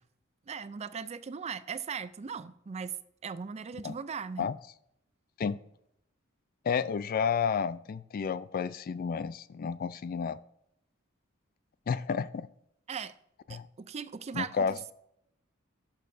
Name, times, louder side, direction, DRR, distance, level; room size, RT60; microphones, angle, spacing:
voice 1, 0.5-3.0 3.2-4.5 12.9-13.1 13.5-14.9, right 6 dB, 30° right, 14 dB, 0.4 m, -38 dB
voice 2, 6.6-10.4 11.9-12.5 13.5-13.7 14.3-14.9, left 6 dB, 45° left, 16 dB, 0.3 m, -31 dB
12.0 x 6.5 x 2.6 m, 0.73 s
head